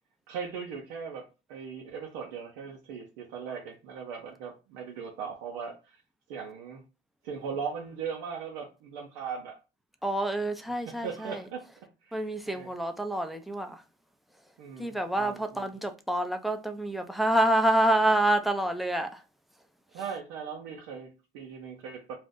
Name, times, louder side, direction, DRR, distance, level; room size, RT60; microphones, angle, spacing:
voice 1, 0.3-6.0 6.3-6.8 7.2-9.6 10.9-11.6 12.0-12.2 12.5-12.7 14.6-15.7 19.9-22.1, right 6 dB, 90° right, 0.6 m, -39 dB
voice 2, 10.0-11.4 12.1-13.8 14.8-19.2, right 1 dB, ahead, 0.5 m, -27 dB
2.5 x 2.1 x 3.6 m
supercardioid pair, 70°, 20 cm